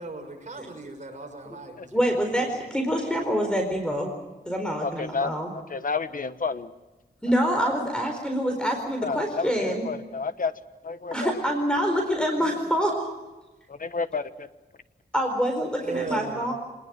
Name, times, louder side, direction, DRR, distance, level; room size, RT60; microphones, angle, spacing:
voice 1, 0.0-1.9 2.4-2.7 12.4-12.5 15.8-16.4, right 3 dB, 45° right, 2 dB, 6.3 m, -37 dB
voice 2, 1.9-4.1 4.5-5.5 7.2-9.9 11.1-13.1 15.1-16.5, equal, 5° left, 3 dB, 4.6 m, -26 dB
voice 3, 4.8-6.7 9.0-10.5 10.8-11.3 13.7-14.5, left 4 dB, 50° left, 11 dB, 1.2 m, -30 dB
26.5 x 20.5 x 7.6 m, 1.1 s
wide cardioid pair, 105°, 17 cm